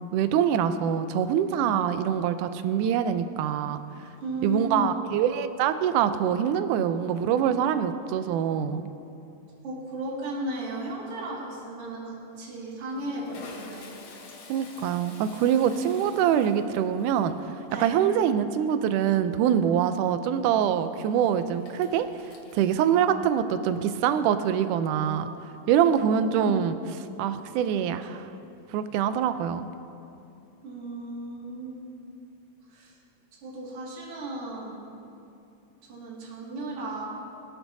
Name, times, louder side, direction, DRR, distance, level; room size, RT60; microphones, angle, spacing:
voice 1, 0.0-3.8 4.4-8.9 14.5-17.3 17.8-22.1 22.5-25.3 25.7-26.8 27.2-28.3 28.7-29.7, right 9 dB, 80° right, 10 dB, 2.0 m, -24 dB
voice 2, 4.2-5.0 9.6-13.9 17.7-17.9 26.0-26.6 30.6-31.8 32.7-32.9 33.4-34.9 35.9-37.0, right 1 dB, 45° right, -5 dB, 2.8 m, -35 dB
Toilet flush, 10.6-10.9 11.2-11.4 12.3-22.8, left 3 dB, 65° left, 1.3 m, -49 dB
24.0 x 8.0 x 2.7 m, 2.7 s
omnidirectional pair, 3.8 m